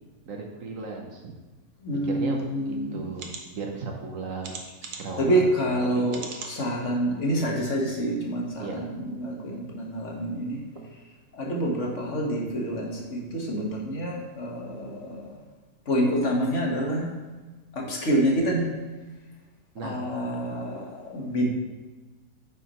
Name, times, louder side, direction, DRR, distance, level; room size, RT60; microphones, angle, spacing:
voice 1, 0.3-1.3 1.9-4.5 5.0-6.1 8.6-8.8 19.7-20.1 20.3-20.5, right 4 dB, 60° right, 1 dB, 1.2 m, -36 dB
voice 2, 1.8-3.1 5.2-10.6 11.3-15.3 15.9-17.1 17.7-18.7 19.8-21.5, right 1 dB, 50° left, -1 dB, 1.7 m, -27 dB
sound 1, 2.4-2.5 3.1-3.4 4.4-5.2 6.1-6.6 7.1-7.2 7.6-7.7, right 4 dB, 80° right, 1.5 m, -39 dB
9.6 x 6.3 x 3.0 m, 1.3 s
omnidirectional pair, 1.7 m